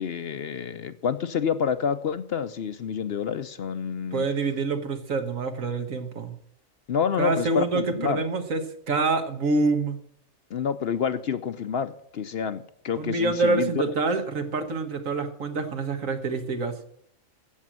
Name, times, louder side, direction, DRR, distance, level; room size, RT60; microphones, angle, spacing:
voice 1, 0.0-4.3 6.9-8.2 10.5-13.8, left 7 dB, 55° left, 12 dB, 0.8 m, -28 dB
voice 2, 4.1-6.3 7.2-8.6 8.9-10.0 13.0-16.8, right 3 dB, 75° right, 7 dB, 1.8 m, -26 dB
15.5 x 6.5 x 7.5 m, 0.67 s
omnidirectional pair, 1.4 m